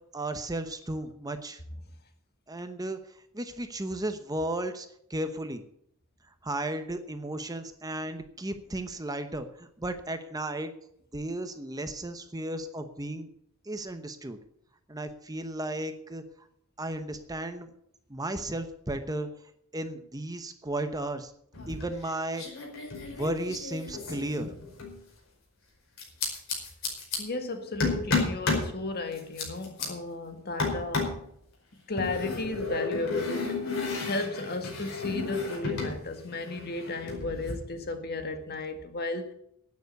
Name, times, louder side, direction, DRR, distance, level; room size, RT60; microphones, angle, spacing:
voice 1, 0.1-1.6 2.5-3.0 3.3-5.6 6.4-10.7 11.1-13.3 13.6-14.4 14.9-16.2 16.8-17.7 18.1-19.3 19.7-21.3 21.7-22.4 23.2-24.5, right 1 dB, 15° right, 1.0 m, -34 dB
sound 1, 21.5-22.1 22.3-25.0 26.0-27.2 27.8-28.7 29.1-29.9 30.6-31.2 32.0-36.0 36.2-37.5, left 3 dB, 65° left, 5.1 m, -32 dB
voice 2, 27.2-31.1 31.9-39.3, left 2 dB, 45° left, 1.8 m, -34 dB
11.5 x 9.5 x 8.1 m
head